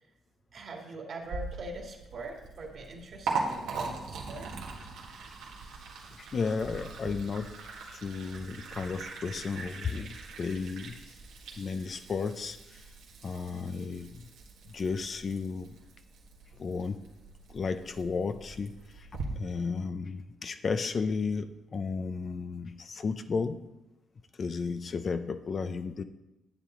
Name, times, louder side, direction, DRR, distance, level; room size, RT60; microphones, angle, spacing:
voice 1, 0.5-4.5, right 2 dB, 55° right, 1 dB, 2.1 m, -43 dB
Liquid, 1.2-19.2, right 4 dB, 85° right, 1.8 m, -41 dB
voice 2, 6.2-7.5 7.9-11.0 11.6-12.9 13.2-14.3 14.7-15.8 16.6-17.0 17.5-19.1 19.3-23.6 24.4-26.0, left 5 dB, 45° left, 10 dB, 0.6 m, -33 dB
9.7 x 8.3 x 3.8 m, 0.98 s
cardioid pair, 90°, 0 cm